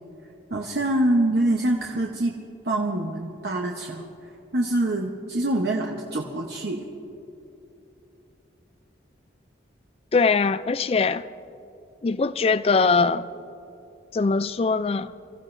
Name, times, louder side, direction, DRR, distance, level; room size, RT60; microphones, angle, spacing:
voice 1, 0.5-2.3 2.6-4.0 4.5-6.8, right 1 dB, 60° right, 1.0 m, -25 dB
voice 2, 10.1-11.3 12.0-13.2 14.1-15.1, left 4 dB, 30° left, 0.3 m, -21 dB
27.5 x 15.0 x 2.6 m
head